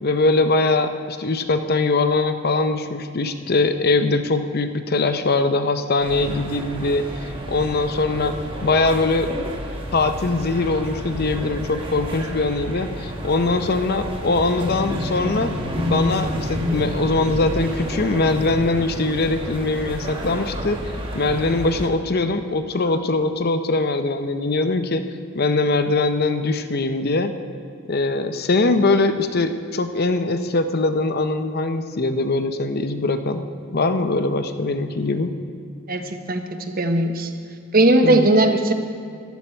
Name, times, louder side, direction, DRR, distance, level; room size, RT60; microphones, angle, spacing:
voice 1, 0.0-8.3 8.6-9.4 9.9-15.5 15.8-20.8 21.1-25.0 25.3-27.3 27.9-33.5 33.7-35.3 38.0-38.3, left 3 dB, 45° left, 8 dB, 0.7 m, -22 dB
sound 1, 6.0-21.9, equal, 25° right, 1.4 m, -30 dB
voice 2, 35.9-37.3 37.7-38.7, right 1 dB, 45° right, 6 dB, 0.9 m, -18 dB
14.5 x 12.0 x 4.4 m, 2.4 s
head